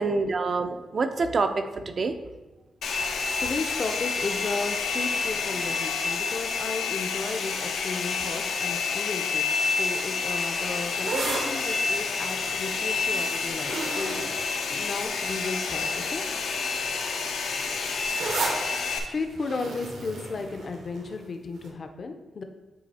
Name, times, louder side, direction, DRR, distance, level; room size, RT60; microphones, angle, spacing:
voice 1, 0.0-2.2, right 4 dB, 40° right, 8 dB, 0.4 m, -26 dB
Domestic sounds home sounds, 2.8-19.0, left 4 dB, 85° left, 0.7 m, -29 dB
voice 2, 3.4-16.2 19.1-22.4, left 3 dB, 40° left, 6 dB, 0.6 m, -34 dB
sound 1, 10.8-15.3 16.0-16.3 16.6-21.2 21.6-21.7, right 3 dB, 85° right, 1.2 m, -34 dB
8.4 x 3.3 x 4.2 m, 1.1 s
wide cardioid pair, 135°, 0 cm